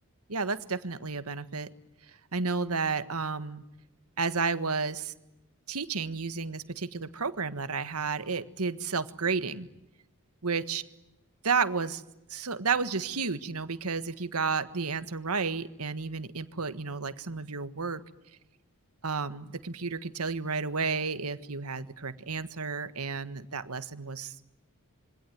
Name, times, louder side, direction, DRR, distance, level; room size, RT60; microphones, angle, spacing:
voice 1, 0.3-1.7 2.3-3.6 4.2-5.1 5.7-9.7 10.4-10.8 11.4-12.0 12.3-18.0 19.0-24.3, right 4 dB, 85° right, 12 dB, 1.6 m, -31 dB
26.5 x 24.0 x 9.3 m, 0.90 s
head